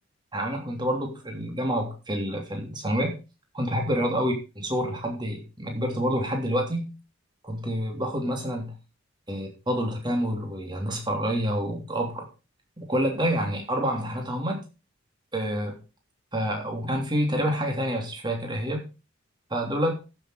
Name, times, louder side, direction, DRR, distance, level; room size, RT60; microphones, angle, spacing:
voice 1, 0.3-3.2 3.5-6.9 7.4-8.7 9.3-12.3 12.8-14.6 15.3-15.8 16.3-18.9 19.5-20.0, equal, 20° right, 2 dB, 3.1 m, -28 dB
14.5 x 6.9 x 4.9 m, 0.30 s
head